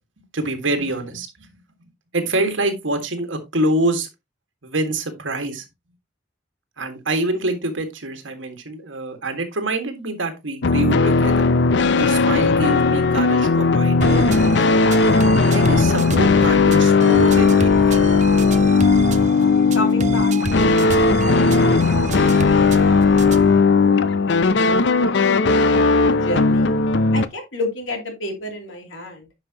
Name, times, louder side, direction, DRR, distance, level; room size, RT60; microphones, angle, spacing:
voice 1, 0.3-1.5 2.1-4.1 4.6-5.6 6.8-11.5 12.0-14.3 15.5-18.1, right 2 dB, 85° right, 1.8 m, -25 dB
sound 1, 10.6-27.3, left 4 dB, 65° left, 0.6 m, -16 dB
sound 2, 14.0-23.6, right 3 dB, 40° right, 0.5 m, -29 dB
voice 2, 19.7-21.5 22.0-22.2 22.5-26.7 27.1-29.3, left 1 dB, 85° left, 2.9 m, -32 dB
9.9 x 5.7 x 2.9 m
head